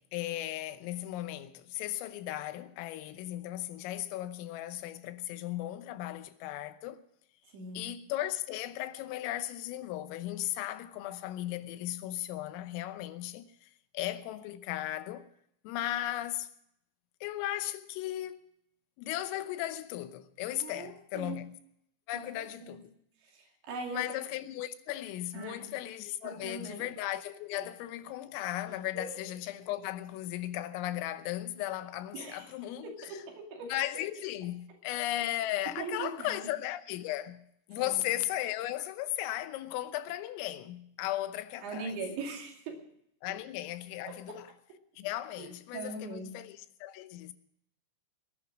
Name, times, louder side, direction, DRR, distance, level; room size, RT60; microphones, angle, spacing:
voice 1, 0.0-7.0 7.7-15.3 15.6-16.5 17.2-18.5 19.0-21.5 22.1-22.9 23.9-33.2 33.7-37.4 37.7-41.9 43.2-44.5 45.0-47.3, left 14 dB, 80° left, 3.5 m, -36 dB
voice 2, 7.5-7.9 20.6-21.4 22.1-22.8 23.2-24.2 25.3-25.7 26.2-26.9 27.6-27.7 28.7-29.4 32.1-32.5 32.8-33.7 35.8-36.5 37.7-38.0 41.6-42.8 44.1-44.4 45.4-46.4, right 3 dB, 65° right, 4.4 m, -41 dB
20.0 x 11.0 x 6.1 m
omnidirectional pair, 6.0 m